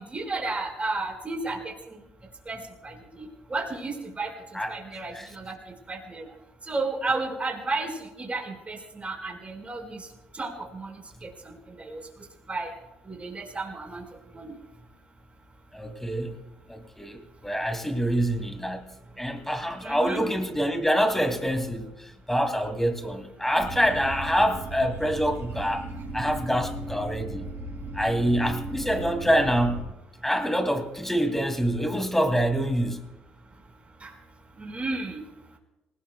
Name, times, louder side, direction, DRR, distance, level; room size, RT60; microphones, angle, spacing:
voice 1, 0.0-1.9 2.4-4.3 4.7-5.6 5.9-6.3 6.7-10.0 10.3-10.9 11.2-12.0 12.5-12.7 13.1-14.0 14.3-14.6 19.8-20.2 34.0-34.1 34.6-35.2, right 3 dB, 25° right, 2 dB, 5.1 m, -33 dB
voice 2, 15.7-16.3 16.7-18.9 19.2-25.8 26.1-27.5 27.9-29.8 30.2-33.0, equal, 5° left, 6 dB, 2.5 m, -26 dB
sound 1, 23.6-29.8, right 2 dB, 55° right, 7.6 m, -36 dB
27.0 x 18.5 x 2.3 m, 0.99 s
hypercardioid pair, 50°, 5 cm